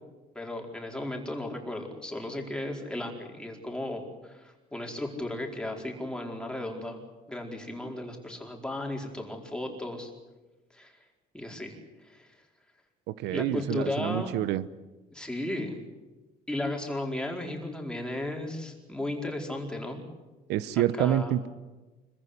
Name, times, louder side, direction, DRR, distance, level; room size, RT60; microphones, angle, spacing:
voice 1, 0.3-7.0 7.3-10.1 10.7-10.9 11.3-11.7 12.0-12.3 13.3-14.3 15.1-15.8 16.5-20.0 21.0-21.3, left 1 dB, 5° left, 1 dB, 4.6 m, -35 dB
voice 2, 13.1-14.7 20.5-21.5, right 12 dB, 85° right, 16 dB, 0.9 m, -27 dB
25.5 x 15.0 x 9.9 m, 1.2 s
cardioid pair, 110°, 17 cm